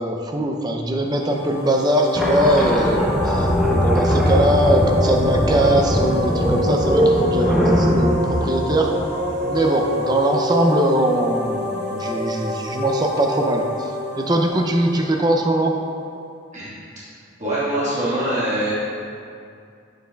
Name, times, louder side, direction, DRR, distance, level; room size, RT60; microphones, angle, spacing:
voice 1, 0.0-8.9 9.4-15.8, right 1 dB, 20° right, 2 dB, 0.4 m, -21 dB
sound 1, 1.0-15.7, left 1 dB, 55° right, 1.1 m, -27 dB
sound 2, 2.1-9.6, equal, ahead, 0.9 m, -20 dB
voice 2, 17.4-18.7, right 1 dB, 40° right, -10 dB, 1.4 m, -23 dB
8.4 x 7.8 x 2.2 m, 2.4 s
head